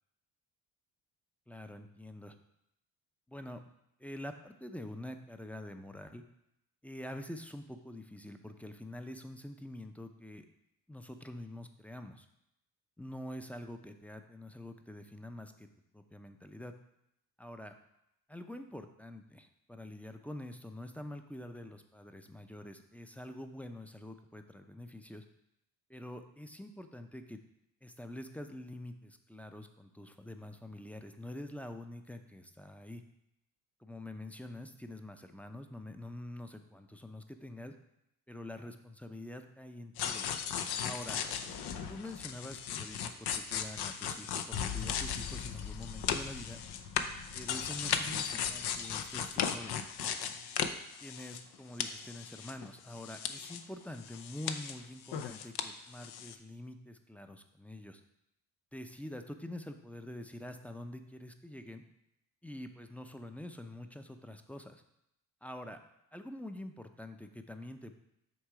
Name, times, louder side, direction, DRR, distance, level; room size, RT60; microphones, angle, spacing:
voice 1, 1.5-2.4 3.3-3.6 4.0-6.2 6.8-10.5 10.9-12.3 13.0-15.7 15.9-16.7 17.4-17.8 18.3-25.2 25.9-27.4 27.8-33.0 33.8-37.7 38.3-40.3 40.8-41.2 41.9-46.6 47.3-49.8 51.0-58.0 58.7-61.8 62.4-64.8 65.4-65.8 66.1-68.0, left 1 dB, 5° left, 7 dB, 0.6 m, -46 dB
sound 1, 40.0-51.5 51.8-53.6 53.9-55.7 55.9-56.3, left 8 dB, 65° left, 0.7 m, -37 dB
6.2 x 3.7 x 4.8 m, 0.82 s
supercardioid pair, 60°, 42 cm